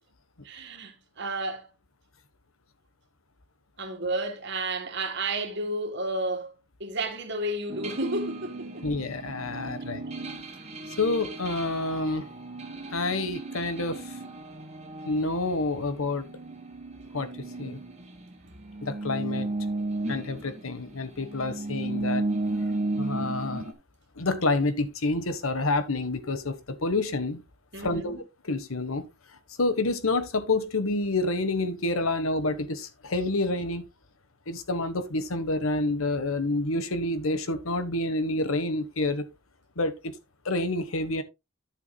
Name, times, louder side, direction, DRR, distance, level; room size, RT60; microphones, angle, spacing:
voice 1, 0.4-1.7 3.8-6.5 6.8-8.9 9.5-9.6 18.4-18.5 27.7-28.2, right 2 dB, 55° right, 1.9 m, -32 dB
sound 1, 7.7-18.3 18.6-23.7, right 2 dB, 30° right, 1.6 m, -34 dB
voice 2, 8.8-10.0 11.0-12.3 12.9-14.0 15.1-16.3 17.1-17.8 18.8-19.5 20.1-22.2 22.9-23.7 24.2-27.4 27.8-29.1 29.6-33.8 34.5-39.2 39.8-40.1 40.4-41.2, left 2 dB, 80° left, 1.3 m, -28 dB
12.0 x 7.1 x 2.3 m
head